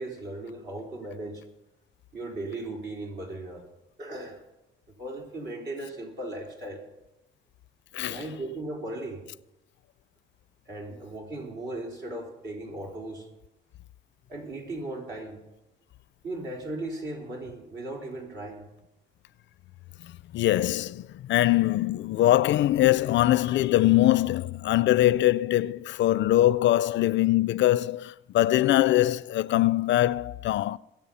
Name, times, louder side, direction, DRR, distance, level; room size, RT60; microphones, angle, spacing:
voice 1, 0.0-1.4 2.1-3.6 4.0-4.4 5.0-6.8 8.1-9.2 10.7-13.3 14.3-15.4 16.2-18.7, right 2 dB, 60° right, 4.3 m, -37 dB
voice 2, 20.3-30.8, left 14 dB, 70° left, 0.4 m, -22 dB
21.5 x 7.5 x 5.6 m
cardioid pair, 90°, 20 cm